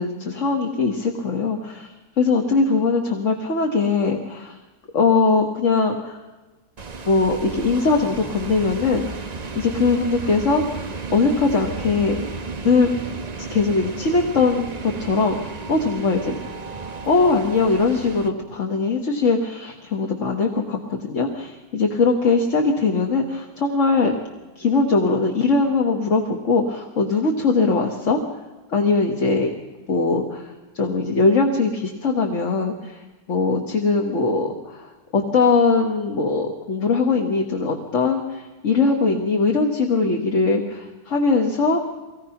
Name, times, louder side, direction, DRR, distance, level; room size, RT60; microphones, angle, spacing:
voice 1, 0.0-4.6 4.9-6.2 7.0-9.2 9.5-10.8 11.1-12.3 12.6-12.9 13.5-16.4 17.1-24.1 24.6-28.2 28.7-29.5 29.9-41.8, left 4 dB, 35° left, 2 dB, 1.7 m, -21 dB
sound 1, 6.8-18.3, right 4 dB, 85° right, 0.3 m, -33 dB
23.5 x 18.5 x 5.9 m, 1.2 s
omnidirectional pair, 2.4 m